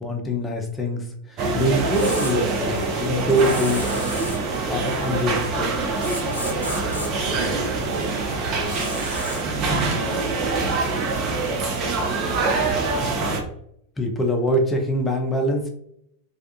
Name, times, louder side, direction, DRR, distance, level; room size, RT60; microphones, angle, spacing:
voice 1, 0.0-3.9 4.7-5.7 14.0-15.7, equal, 15° left, 2 dB, 0.6 m, -24 dB
sound 1, 1.4-13.4, right 3 dB, 35° right, 0.5 m, -24 dB
sound 2, 1.9-2.3 3.3-4.4 6.0-7.1 8.7-9.4, left 1 dB, 85° left, 0.5 m, -33 dB
voice 2, 6.3-6.8 7.2-9.2 9.7-10.5 10.8-12.0, right 2 dB, 85° right, -4 dB, 0.5 m, -39 dB
2.4 x 2.2 x 2.8 m, 0.72 s
figure-of-eight pair, 90°, 0 cm